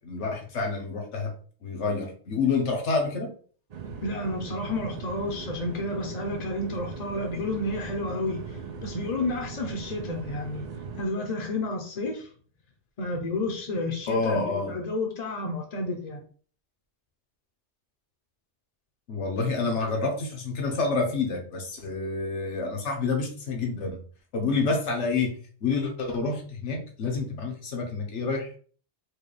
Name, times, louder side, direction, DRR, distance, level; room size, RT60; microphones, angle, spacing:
voice 1, 0.0-1.3 1.6-3.3 14.1-14.7 19.1-24.0 24.3-28.6, left 4 dB, 85° left, 2 dB, 1.2 m, -28 dB
sound 1, 3.7-11.1, right 5 dB, 55° right, 0.4 m, -39 dB
voice 2, 4.0-10.6 11.0-12.3 13.0-16.2, left 2 dB, 45° left, 1 dB, 0.6 m, -31 dB
4.7 x 2.3 x 3.1 m, 0.44 s
omnidirectional pair, 1.2 m